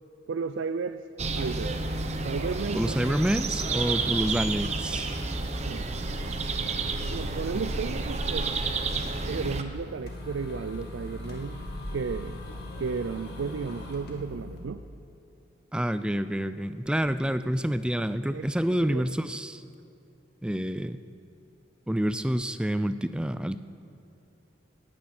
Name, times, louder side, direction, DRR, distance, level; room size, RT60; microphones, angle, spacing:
voice 1, 0.3-1.0 1.3-1.7 2.2-2.9 5.6-5.8 7.1-8.5 9.3-11.6 11.9-12.3 12.8-14.8 18.3-18.5 18.8-19.0, right 5 dB, 80° right, 11 dB, 0.4 m, -33 dB
sound 1, 1.2-9.6, right 3 dB, 35° right, 0.8 m, -30 dB
voice 2, 2.7-5.2 15.7-19.6 20.4-21.0 21.9-23.6, equal, 5° right, 12 dB, 0.3 m, -28 dB
sound 2, 9.7-14.6, left 1 dB, 55° left, 2.3 m, -39 dB
18.0 x 10.5 x 6.0 m, 2.6 s
head